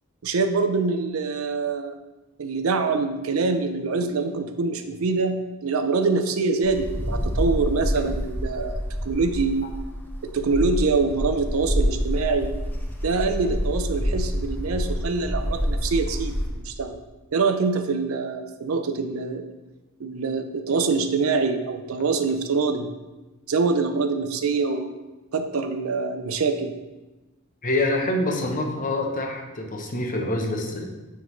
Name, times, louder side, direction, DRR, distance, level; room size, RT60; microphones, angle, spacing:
voice 1, 0.2-2.0 2.4-9.6 10.3-12.5 13.0-17.0 17.3-19.4 20.0-22.9 23.5-24.9 25.3-26.7, right 4 dB, 80° right, 7 dB, 0.5 m, -25 dB
Wind, 6.6-16.6, equal, 10° left, 0.7 m, -27 dB
voice 2, 27.6-30.9, left 1 dB, 40° left, 2 dB, 0.8 m, -26 dB
9.2 x 3.6 x 3.1 m, 1.1 s
head